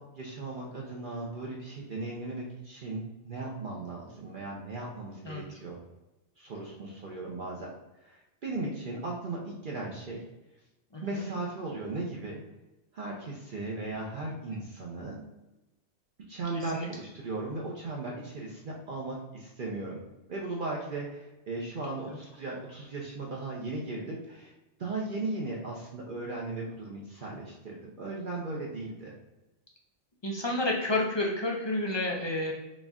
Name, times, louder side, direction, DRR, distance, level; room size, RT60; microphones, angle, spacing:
voice 1, 0.0-5.8 6.4-7.7 8.0-10.2 11.0-12.4 12.9-15.2 16.2-20.0 20.3-24.5 24.8-29.1, right 2 dB, 50° right, -3 dB, 0.7 m, -37 dB
voice 2, 30.2-32.5, left 2 dB, 40° left, -2 dB, 0.3 m, -30 dB
4.1 x 2.4 x 3.5 m, 1.0 s
omnidirectional pair, 1.2 m